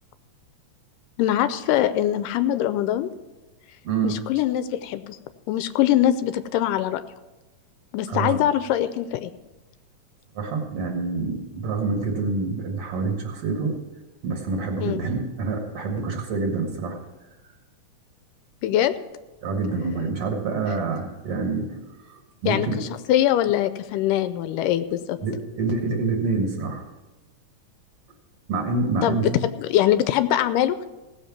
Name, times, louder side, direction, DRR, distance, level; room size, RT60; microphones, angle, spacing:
voice 1, 1.2-3.1 4.0-5.2 5.5-7.0 7.9-9.3 14.8-15.0 18.6-18.9 22.5-25.2 29.0-29.3 29.6-30.9, left 12 dB, 85° left, 12 dB, 2.2 m, -22 dB
voice 2, 3.8-4.2 8.1-8.4 10.4-13.8 14.2-17.0 19.4-21.8 22.1-22.8 25.2-26.8 28.5-29.4, right 4 dB, 55° right, 2 dB, 2.1 m, -27 dB
16.5 x 7.4 x 5.9 m, 1.1 s
omnidirectional pair, 3.7 m